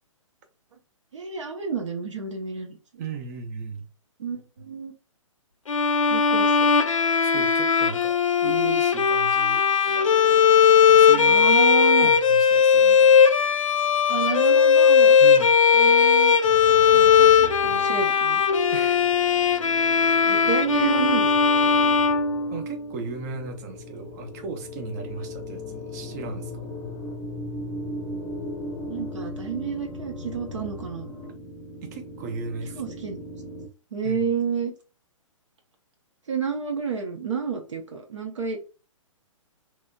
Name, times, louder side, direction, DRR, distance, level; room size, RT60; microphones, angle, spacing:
voice 1, 1.1-3.0 4.2-4.9 6.0-6.7 11.1-12.1 14.1-15.2 15.7-16.3 16.7-18.4 20.2-21.3 21.6-22.0 28.8-31.1 32.7-33.2 33.9-34.7 36.3-38.6, right 6 dB, 65° right, 0.7 m, -30 dB
voice 2, 3.0-3.9 7.2-10.5 10.9-11.5 12.0-13.3 15.2-15.6 18.7-19.1 22.5-26.7 31.8-32.9 34.0-34.3, right 5 dB, 30° right, 0.6 m, -36 dB
Bowed string instrument, 5.7-22.9, left 6 dB, 75° left, 0.4 m, -18 dB
sound 1, 16.4-33.7, left 2 dB, 20° left, 0.6 m, -37 dB
3.0 x 2.9 x 2.3 m
figure-of-eight pair, 120°, 17 cm